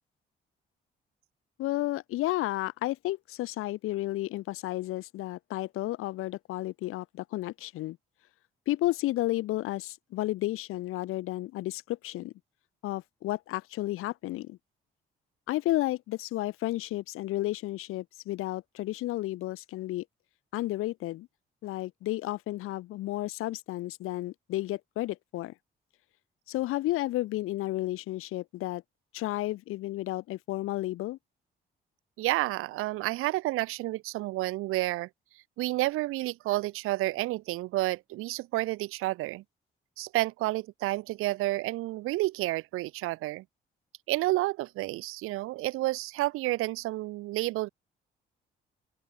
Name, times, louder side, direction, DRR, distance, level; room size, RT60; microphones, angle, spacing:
voice 1, 1.6-8.0 8.7-12.3 12.8-14.6 15.5-20.0 20.5-21.3 21.6-25.5 26.5-28.8 29.1-31.2, left 16 dB, 85° left, 5.5 m, -32 dB
voice 2, 32.2-35.1 35.6-39.4 40.0-43.4 44.1-47.7, right 18 dB, 85° right, 3.5 m, -30 dB
open air
supercardioid pair, 60°, 21 cm